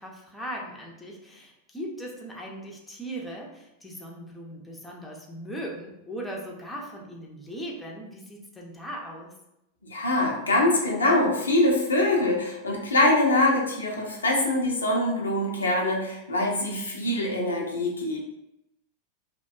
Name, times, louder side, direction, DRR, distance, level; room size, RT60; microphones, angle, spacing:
voice 1, 0.0-9.3, right 1 dB, 10° left, -2 dB, 0.5 m, -38 dB
voice 2, 9.9-18.2, left 1 dB, 75° left, -1 dB, 0.5 m, -24 dB
2.5 x 2.1 x 2.3 m, 0.86 s
figure-of-eight pair, 90°, 0 cm